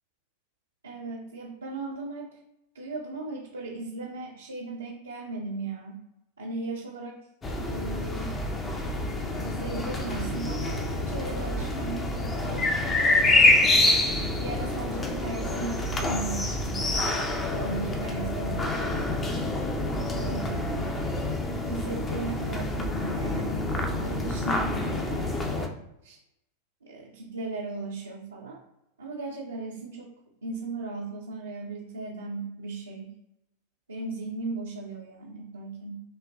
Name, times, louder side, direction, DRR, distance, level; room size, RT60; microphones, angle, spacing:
voice 1, 0.8-2.4 2.7-6.0 6.4-7.2 7.7-8.3 9.4-13.6 14.4-19.1 20.0-21.0 21.7-25.7 26.0-26.2 26.8-28.6 29.0-30.1 30.4-33.1 33.9-36.0, right 3 dB, 75° right, -3 dB, 0.6 m, -37 dB
sound 1, 7.4-25.7, left 2 dB, 20° left, 0.6 m, -27 dB
5.3 x 2.9 x 2.6 m, 0.87 s
figure-of-eight pair, 90°, 0 cm